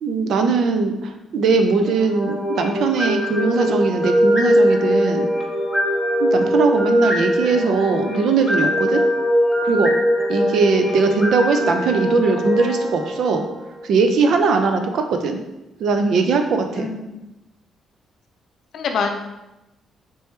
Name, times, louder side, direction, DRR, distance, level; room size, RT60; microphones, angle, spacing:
voice 1, 0.0-5.3 6.2-9.0 9.6-9.9 10.3-13.4 13.8-15.4 15.8-16.9, right 4 dB, 70° right, 5 dB, 0.5 m, -20 dB
sound 1, 1.8-13.9, equal, 10° left, 1.1 m, -21 dB
voice 2, 16.8-17.2 18.7-19.1, left 5 dB, 65° left, 4 dB, 0.5 m, -25 dB
4.5 x 3.0 x 3.2 m, 0.96 s
cardioid pair, 90°, 0 cm